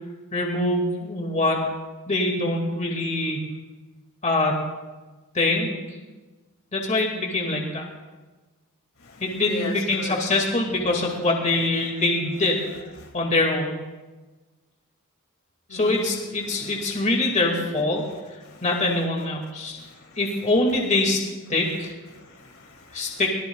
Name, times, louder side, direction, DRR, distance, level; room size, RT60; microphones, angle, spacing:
voice 1, 0.3-1.6 2.1-3.5 4.2-4.6 5.3-5.7 6.7-7.9 9.2-12.7 13.1-13.7 15.7-18.0 18.6-19.8 20.2-21.2 21.5-21.9 22.9-23.3, left 2 dB, 35° left, 1 dB, 2.1 m, -24 dB
voice 2, 9.0-10.2 13.0-13.1 15.7-16.0 16.5-16.7 18.5-18.6 19.6-20.2 22.1-23.2, left 2 dB, 75° left, 1 dB, 2.5 m, -37 dB
23.0 x 18.0 x 2.4 m, 1.2 s
head